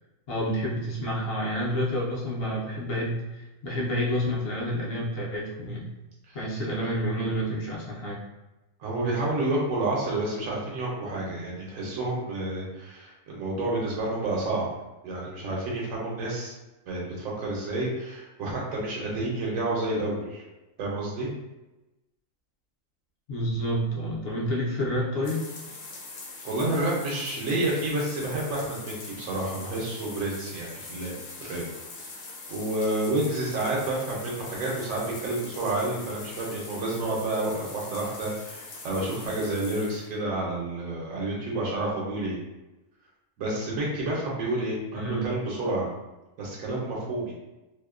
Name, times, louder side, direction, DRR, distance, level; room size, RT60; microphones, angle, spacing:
voice 1, 0.3-5.9 6.3-8.2 23.3-25.5 44.9-45.2, equal, 60° left, -4 dB, 0.7 m, -29 dB
voice 2, 8.8-14.7 15.0-16.5 16.9-20.4 20.8-21.3 26.4-31.2 31.4-31.6 32.5-42.4 43.4-45.9 46.4-47.3, right 2 dB, 90° right, -4 dB, 1.0 m, -29 dB
sound 1, 25.2-40.2, left 3 dB, 90° left, 1.0 m, -42 dB
2.6 x 2.1 x 2.3 m, 1.0 s
omnidirectional pair, 1.4 m